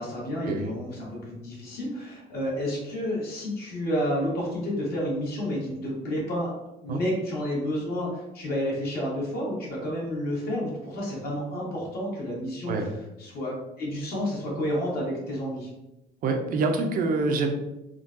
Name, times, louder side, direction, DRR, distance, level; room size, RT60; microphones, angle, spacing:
voice 1, 0.0-6.5 6.8-12.9 13.2-15.7, equal, 65° left, -4 dB, 1.4 m, -30 dB
voice 2, 16.2-17.6, right 3 dB, 55° right, 5 dB, 0.5 m, -26 dB
3.6 x 2.2 x 2.6 m, 0.94 s
cardioid pair, 110°, 17 cm